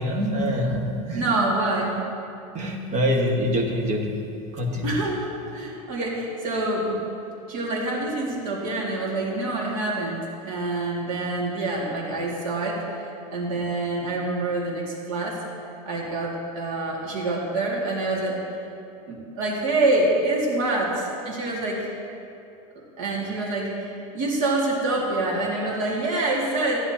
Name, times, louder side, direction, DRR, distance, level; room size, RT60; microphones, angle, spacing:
voice 1, 0.0-1.2 2.5-4.2 4.5-5.0, equal, 35° right, 0 dB, 1.6 m, -25 dB
voice 2, 1.1-2.0 4.8-5.2 5.5-7.0 7.5-12.8 13.3-15.4 15.9-18.4 19.1-21.9 23.0-26.8, right 2 dB, 65° right, -3 dB, 2.3 m, -26 dB
15.0 x 9.9 x 2.9 m, 2.7 s
supercardioid pair, 150°, 19 cm